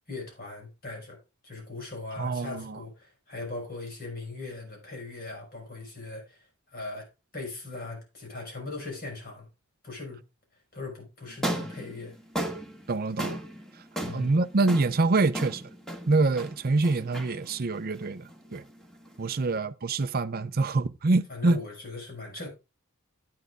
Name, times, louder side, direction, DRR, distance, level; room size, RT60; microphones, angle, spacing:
voice 1, 0.1-1.2 1.4-6.4 6.7-7.1 7.3-9.5 9.8-10.2 10.7-12.2 14.0-14.3 21.3-22.5, left 3 dB, 40° left, 5.7 m, -39 dB
voice 2, 2.2-2.8 12.9-13.4 14.1-15.7 16.1-18.6 19.2-21.6, right 3 dB, 45° right, 0.6 m, -26 dB
sound 1, 11.3-19.6, right 1 dB, ahead, 1.9 m, -37 dB
12.5 x 9.4 x 2.3 m
head